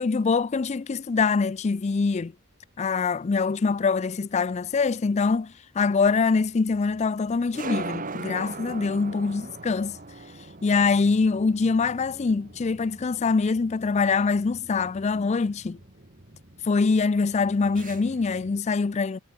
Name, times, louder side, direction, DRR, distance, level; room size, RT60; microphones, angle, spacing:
voice 1, 0.0-2.3 2.8-10.0 10.6-15.8 16.6-19.2, left 4 dB, 30° left, 0.4 m, -24 dB
sound 1, 4.6-18.6, right 3 dB, 40° right, 2.0 m, -41 dB
head